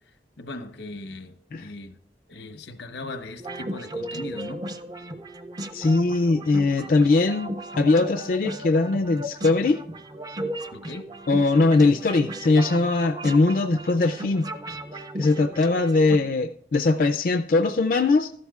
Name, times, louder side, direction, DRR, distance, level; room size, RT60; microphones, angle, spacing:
voice 1, 0.1-2.0 2.3-4.6 10.7-11.1, left 2 dB, 90° left, 0.9 m, -38 dB
sound 1, 3.4-16.2, right 1 dB, 20° right, 0.4 m, -36 dB
voice 2, 5.7-9.8 11.3-14.5 15.2-18.3, left 3 dB, 50° left, 0.4 m, -21 dB
13.0 x 11.5 x 2.4 m
head